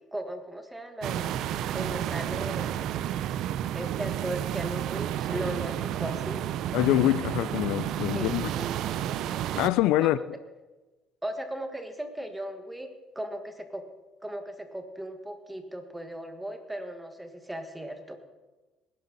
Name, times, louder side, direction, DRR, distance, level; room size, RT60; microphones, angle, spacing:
voice 1, 0.1-1.5 1.7-2.8 3.7-6.4 8.1-8.7 10.0-10.2 11.2-13.9 14.2-18.2, right 1 dB, 5° right, 1.5 m, -37 dB
sound 1, 1.0-9.7, right 11 dB, 70° right, 0.6 m, -31 dB
voice 2, 6.7-8.5 9.6-10.2, left 15 dB, 85° left, 0.4 m, -24 dB
19.5 x 11.5 x 4.0 m
cardioid pair, 120°, 0 cm